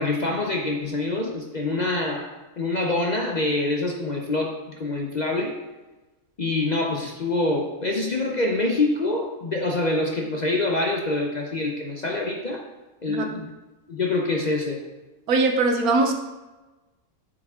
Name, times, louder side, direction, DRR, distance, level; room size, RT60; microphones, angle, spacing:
voice 1, 0.0-5.5 6.4-12.6 13.0-13.5 13.9-14.8, left 2 dB, 40° left, 1 dB, 0.6 m, -25 dB
voice 2, 15.3-16.1, right 3 dB, 80° right, 4 dB, 1.4 m, -21 dB
7.2 x 6.6 x 3.6 m, 1.1 s
omnidirectional pair, 1.5 m